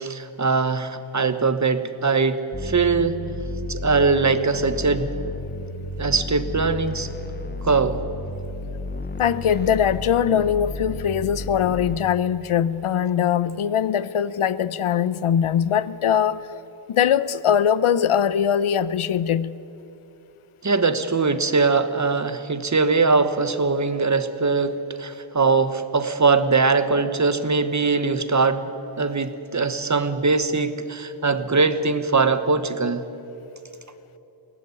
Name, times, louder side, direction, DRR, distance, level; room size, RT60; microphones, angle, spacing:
voice 1, 0.0-3.2 3.7-5.1 6.0-7.1 7.6-8.0 20.6-28.7 29.0-33.1, right 4 dB, 35° right, 1.2 m, -21 dB
sound 1, 2.5-12.0, left 2 dB, 20° left, 0.8 m, -33 dB
voice 2, 9.2-16.5 16.9-19.5, left 8 dB, 80° left, 0.8 m, -21 dB
22.0 x 18.0 x 9.7 m
wide cardioid pair, 130°, 50 cm